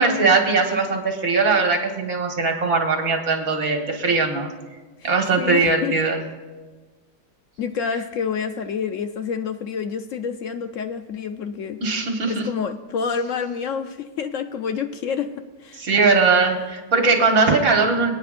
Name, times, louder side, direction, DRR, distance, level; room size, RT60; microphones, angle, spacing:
voice 1, 0.0-4.5 5.0-6.2 11.8-12.5 15.8-18.1, right 4 dB, 55° right, 3 dB, 1.9 m, -20 dB
voice 2, 5.4-5.9 7.6-11.8 12.3-15.3 15.6-15.8, left 6 dB, 70° left, 8 dB, 0.7 m, -28 dB
26.0 x 9.4 x 2.5 m, 1.3 s
omnidirectional pair, 1.8 m